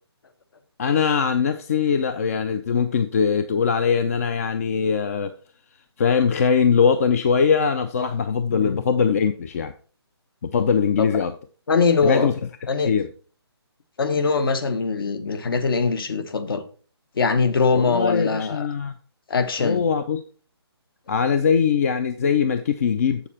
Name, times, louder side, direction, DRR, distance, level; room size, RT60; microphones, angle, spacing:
voice 1, 0.8-5.3 6.0-9.7 10.5-11.3 12.0-12.3 12.9-13.1 17.7-18.9 19.6-20.2 21.1-23.2, left 6 dB, 35° left, 0.5 m, -21 dB
voice 2, 11.7-12.3 12.7-12.9 14.0-16.6 17.2-18.7 19.3-19.8, left 4 dB, 55° left, 1.1 m, -22 dB
7.6 x 7.0 x 4.2 m
hypercardioid pair, 160°, 14 cm